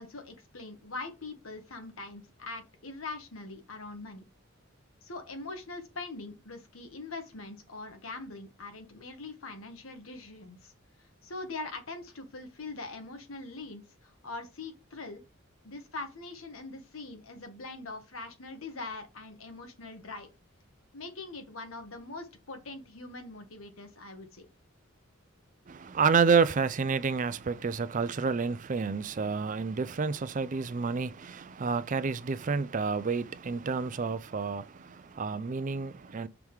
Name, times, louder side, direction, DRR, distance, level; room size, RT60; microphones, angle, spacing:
voice 1, 0.0-4.2 5.0-10.7 11.0-15.2 15.6-20.3 20.9-24.5, left 3 dB, 80° left, 1.6 m, -42 dB
voice 2, 25.7-36.3, right 5 dB, 40° right, 0.4 m, -29 dB
5.9 x 3.6 x 4.7 m
head